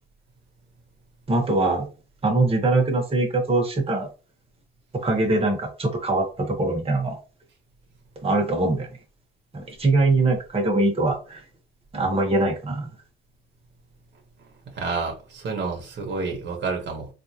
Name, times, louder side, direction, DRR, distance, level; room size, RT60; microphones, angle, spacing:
voice 1, 1.3-1.9 2.2-4.1 4.9-7.2 8.2-8.9 9.5-11.4 11.9-12.9, right 2 dB, 30° right, 1.3 m, -22 dB
voice 2, 14.7-17.1, right 4 dB, 65° right, 1.3 m, -29 dB
3.6 x 2.6 x 2.9 m
cardioid pair, 90°, 20 cm